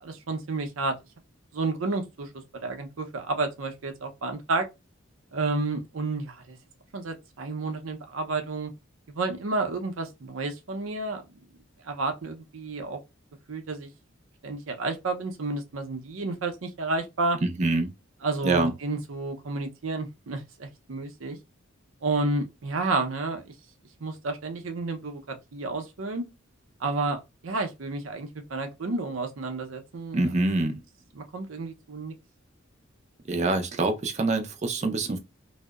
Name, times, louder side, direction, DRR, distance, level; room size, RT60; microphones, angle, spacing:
voice 1, 0.0-0.9 1.5-2.3 2.6-4.7 5.3-6.6 6.9-8.7 9.1-11.2 11.8-13.0 13.5-13.9 14.4-17.4 18.2-21.4 22.0-23.5 24.0-26.2 26.8-30.2 31.1-32.1, right 3 dB, 80° right, 0.6 m, -31 dB
voice 2, 17.4-17.9 18.4-18.7 30.1-30.8 33.3-35.2, right 2 dB, 35° right, 0.5 m, -25 dB
2.7 x 2.0 x 2.2 m
head